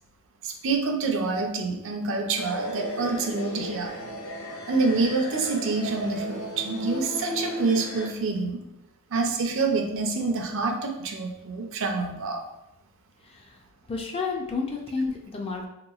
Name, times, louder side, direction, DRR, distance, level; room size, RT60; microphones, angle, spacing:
voice 1, 0.4-3.9 4.7-8.6 9.1-12.4, right 3 dB, 60° right, 4 dB, 0.5 m, -27 dB
sound 1, 2.4-8.1, equal, 65° left, 0.7 m, -35 dB
voice 2, 13.2-13.6 13.9-15.7, left 4 dB, 25° left, 1 dB, 0.4 m, -31 dB
3.4 x 2.9 x 2.3 m, 0.89 s
head